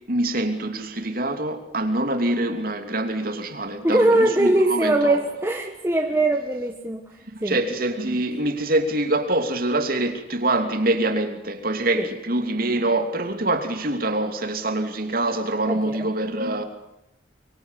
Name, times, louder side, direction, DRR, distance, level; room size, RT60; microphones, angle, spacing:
voice 1, 0.0-5.2 7.3-16.6, right 2 dB, 50° right, 2.9 m, -25 dB
voice 2, 3.8-7.1 7.4-7.6 12.0-12.1 15.7-16.1, right 1 dB, 15° right, 1.5 m, -21 dB
24.5 x 23.0 x 8.3 m
head